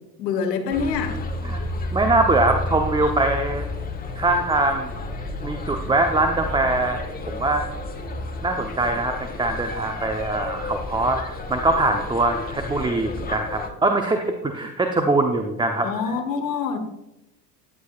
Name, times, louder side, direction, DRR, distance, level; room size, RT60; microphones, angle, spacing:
voice 1, 0.2-1.2 15.8-16.8, left 6 dB, 75° left, 7 dB, 1.6 m, -25 dB
sound 1, 0.7-13.7, left 2 dB, 20° left, 1.6 m, -31 dB
voice 2, 1.9-3.7 4.2-4.9 5.4-7.0 7.3-7.6 8.4-15.9, right 2 dB, 10° right, 5 dB, 0.8 m, -22 dB
14.0 x 9.7 x 2.5 m, 0.86 s
hypercardioid pair, 80°, 49 cm